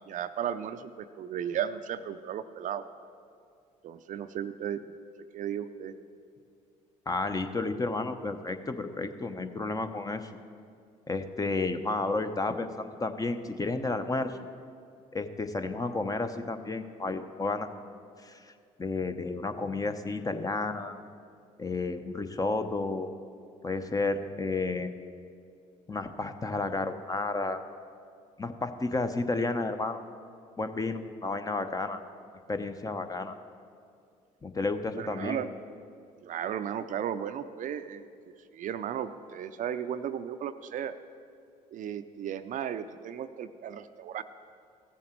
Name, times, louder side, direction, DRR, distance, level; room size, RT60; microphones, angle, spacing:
voice 1, 0.1-2.8 3.8-4.9 5.3-5.9 34.9-35.5 36.2-38.0 38.5-40.9 41.7-44.2, right 9 dB, 55° right, 11 dB, 0.5 m, -35 dB
voice 2, 7.1-10.3 11.1-14.4 15.1-18.5 18.8-21.0 21.6-23.1 23.6-24.9 25.9-27.6 28.4-30.0 30.6-32.0 32.5-33.4 34.4-35.4, left 3 dB, 20° left, 8 dB, 0.8 m, -32 dB
15.5 x 7.2 x 4.5 m, 2.3 s
supercardioid pair, 65°, 16 cm